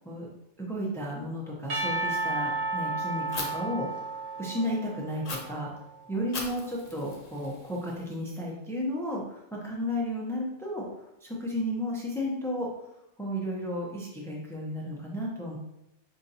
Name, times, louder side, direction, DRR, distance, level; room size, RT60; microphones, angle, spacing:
voice 1, 0.6-3.9 4.4-5.7 6.1-10.9 11.2-12.7 13.2-15.6, equal, 5° left, -3 dB, 0.5 m, -33 dB
Percussion / Church bell, 1.7-5.9, right 3 dB, 60° right, 0.8 m, -33 dB
Fire, 3.3-3.5 5.2-5.4 6.3-8.3, left 3 dB, 40° left, 0.7 m, -39 dB
5.5 x 2.5 x 2.7 m, 0.85 s
omnidirectional pair, 1.2 m